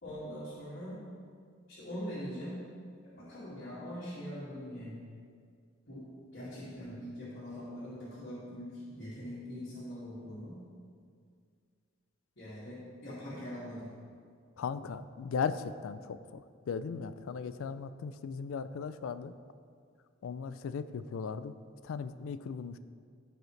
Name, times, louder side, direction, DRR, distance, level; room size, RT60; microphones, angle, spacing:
voice 1, 0.0-1.0 1.7-2.6 3.0-5.1 5.9-6.1 6.3-10.6 12.4-13.9, equal, 60° left, -12 dB, 2.2 m, -42 dB
voice 2, 14.6-16.4 16.7-19.3 20.2-21.5 21.8-22.8, left 5 dB, 85° left, 13 dB, 0.4 m, -37 dB
14.5 x 4.8 x 3.2 m, 2.1 s
head